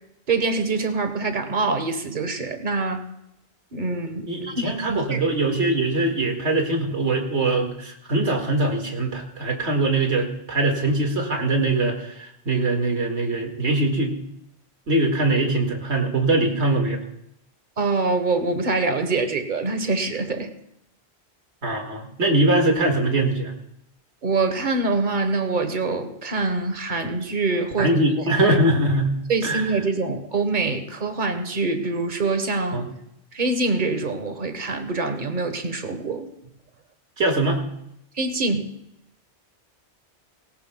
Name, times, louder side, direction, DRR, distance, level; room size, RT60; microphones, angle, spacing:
voice 1, 0.3-3.0 3.7-4.3 4.6-5.2 17.8-20.5 24.2-27.9 28.2-28.6 29.3-32.8 33.3-36.3 38.1-38.7, right 3 dB, 45° right, 8 dB, 1.3 m, -25 dB
voice 2, 4.3-14.1 14.9-17.0 21.6-23.5 27.8-29.1 29.4-29.7 32.7-32.9 37.2-37.6, right 2 dB, 80° right, 2 dB, 2.2 m, -22 dB
18.5 x 17.0 x 2.3 m, 0.80 s
omnidirectional pair, 1.1 m